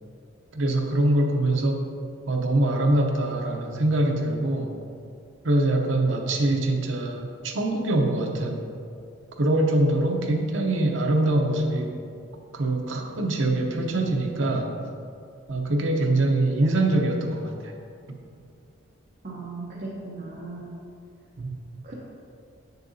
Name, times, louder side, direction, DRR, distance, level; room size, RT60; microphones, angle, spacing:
voice 1, 0.5-1.8 2.3-4.7 5.4-8.7 9.4-11.9 12.5-14.7 15.5-17.7 21.4-21.5, right 1 dB, 65° right, 2 dB, 0.7 m, -23 dB
voice 2, 19.2-20.7 21.8-21.9, right 3 dB, 40° right, -6 dB, 0.9 m, -37 dB
7.6 x 6.5 x 2.7 m, 2.4 s
head